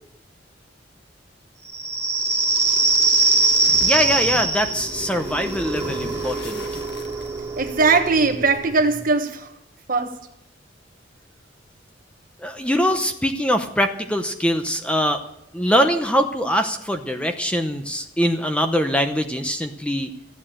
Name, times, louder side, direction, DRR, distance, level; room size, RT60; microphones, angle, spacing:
sound 1, 1.7-9.0, right 3 dB, 15° right, 2.3 m, -22 dB
sound 2, 3.5-7.7, left 2 dB, 60° left, 1.4 m, -38 dB
voice 1, 3.8-6.6 12.4-15.2 15.5-20.1, equal, 5° left, 0.8 m, -22 dB
voice 2, 7.6-9.5 9.9-10.2, right 4 dB, 45° right, 1.3 m, -20 dB
14.0 x 9.0 x 7.5 m
head